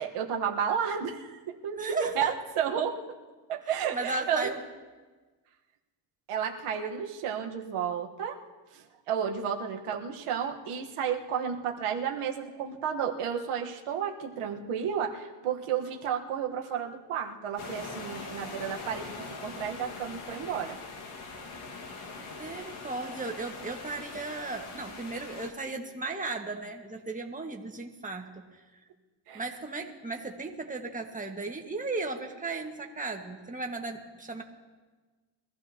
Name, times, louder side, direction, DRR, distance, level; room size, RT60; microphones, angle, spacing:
voice 1, 0.0-3.0 3.5-4.5 6.3-8.4 8.7-20.8 29.3-29.4, right 8 dB, 85° right, 2 dB, 1.5 m, -32 dB
voice 2, 1.7-2.3 3.9-4.6 22.1-28.6 29.3-34.4, right 3 dB, 15° right, 2 dB, 1.7 m, -36 dB
sound 1, 17.6-25.5, left 3 dB, 80° left, 2.0 m, -42 dB
23.0 x 14.5 x 2.9 m, 1.3 s
cardioid pair, 95°, 50 cm